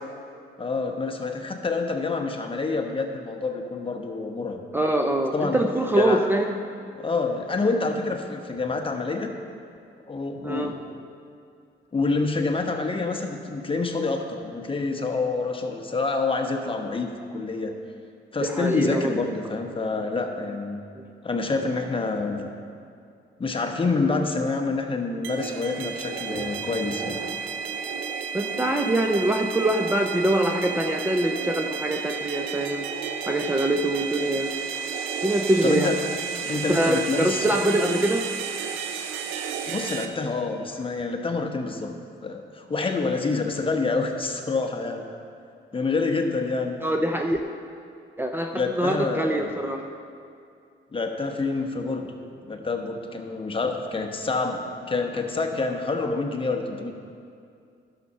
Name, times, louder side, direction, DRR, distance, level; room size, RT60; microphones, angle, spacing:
voice 1, 0.6-4.6 5.3-5.6 5.9-6.3 7.0-9.3 10.1-10.8 11.9-17.8 18.3-20.8 21.2-22.5 23.4-27.2 35.6-36.0 36.4-37.5 39.7-41.9 42.2-45.0 45.7-46.8 48.5-49.5 50.9-52.1 52.4-56.9, left 3 dB, 25° left, 3 dB, 1.1 m, -27 dB
voice 2, 4.7-6.6 10.4-10.7 18.4-19.2 21.0-21.1 28.3-32.8 33.3-34.5 35.2-35.9 36.7-38.3 46.8-47.4 48.2-49.8, right 1 dB, 10° right, 3 dB, 0.6 m, -24 dB
sound 1, 25.2-40.1, right 6 dB, 90° right, 0.7 m, -32 dB
11.5 x 6.9 x 5.5 m, 2.4 s
cardioid pair, 90°, 20 cm